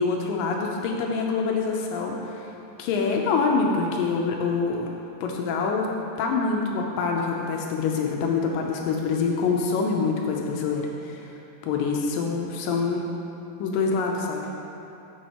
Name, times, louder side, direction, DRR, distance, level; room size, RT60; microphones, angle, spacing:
voice 1, 0.0-2.5 2.8-4.9 5.2-5.9 6.2-11.3 11.6-13.0 13.6-14.4, left 4 dB, 80° left, 0 dB, 2.2 m, -25 dB
8.4 x 7.0 x 2.9 m, 2.8 s
omnidirectional pair, 4.1 m